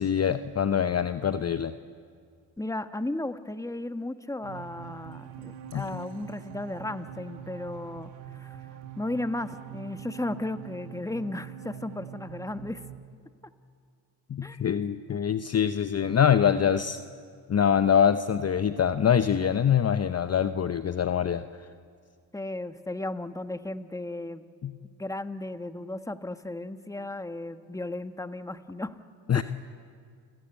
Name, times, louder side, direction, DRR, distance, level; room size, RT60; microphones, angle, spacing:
voice 1, 0.0-1.7 5.7-5.9 14.3-17.0 17.5-21.7 24.6-24.7 29.3-29.4, left 8 dB, 30° left, 11 dB, 0.8 m, -24 dB
voice 2, 2.6-8.6 9.0-12.8 14.4-14.6 22.3-24.5 25.0-28.9 29.3-29.4, left 2 dB, 5° left, 10 dB, 1.3 m, -35 dB
sound 1, 4.4-13.0, right 10 dB, 70° right, 2.0 m, -44 dB
29.5 x 15.5 x 9.0 m, 2.1 s
hypercardioid pair, 55°, 49 cm